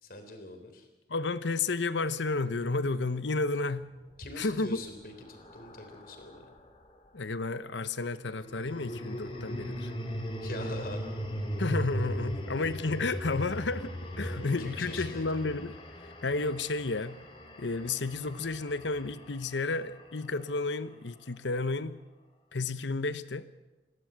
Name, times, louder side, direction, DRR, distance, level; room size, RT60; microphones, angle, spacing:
voice 1, 0.0-0.9 4.2-6.5 10.4-11.1 14.2-15.2, left 2 dB, 50° left, 6 dB, 3.5 m, -43 dB
voice 2, 1.1-3.9 4.4-4.8 7.1-9.9 11.6-15.8 16.0-17.2 17.6-22.0 22.5-23.5, left 3 dB, 90° left, 13 dB, 1.0 m, -32 dB
sound 1, 4.2-6.7 8.3-20.6, equal, 30° left, 2.6 m, -38 dB
27.5 x 12.0 x 8.0 m, 1.2 s
head